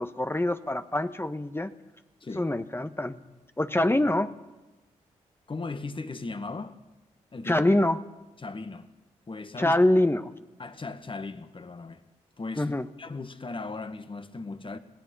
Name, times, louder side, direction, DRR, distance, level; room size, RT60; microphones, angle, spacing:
voice 1, 0.0-1.7 2.4-3.2 3.6-4.3 7.5-8.0 9.6-10.3 12.6-12.8, left 1 dB, 15° left, 1.4 m, -24 dB
voice 2, 5.5-6.8 7.3-7.7 8.4-8.9 9.3-9.8 10.6-12.0 12.4-14.8, left 3 dB, 35° left, 1.9 m, -37 dB
26.5 x 17.5 x 5.6 m
supercardioid pair, 45°, 14 cm